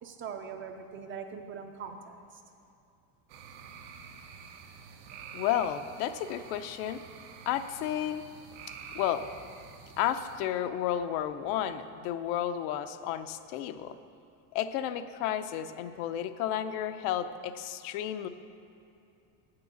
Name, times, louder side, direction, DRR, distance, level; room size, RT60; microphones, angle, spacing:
voice 1, 0.0-2.2, right 6 dB, 30° right, 6 dB, 0.4 m, -41 dB
sound 1, 3.3-10.4, right 6 dB, 85° right, 1.0 m, -48 dB
voice 2, 5.3-7.0 7.5-8.2 8.9-9.3 10.0-14.0 14.5-18.3, left 10 dB, 75° left, 10 dB, 0.6 m, -32 dB
8.2 x 6.8 x 6.9 m, 2.7 s
cardioid pair, 145°, 45 cm